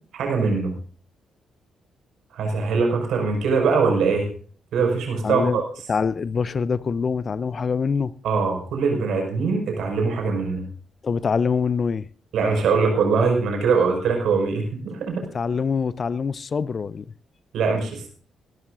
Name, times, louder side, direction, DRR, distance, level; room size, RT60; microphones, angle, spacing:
voice 1, 0.1-0.7 2.3-4.3 4.7-5.6 8.2-10.7 12.3-15.2 17.5-18.1, right 4 dB, 70° right, 5.5 m, -22 dB
voice 2, 5.2-5.6 5.9-8.1 11.0-12.1 15.3-17.0, left 5 dB, 45° left, 0.6 m, -24 dB
23.5 x 12.5 x 2.6 m
hypercardioid pair, 45°, 0 cm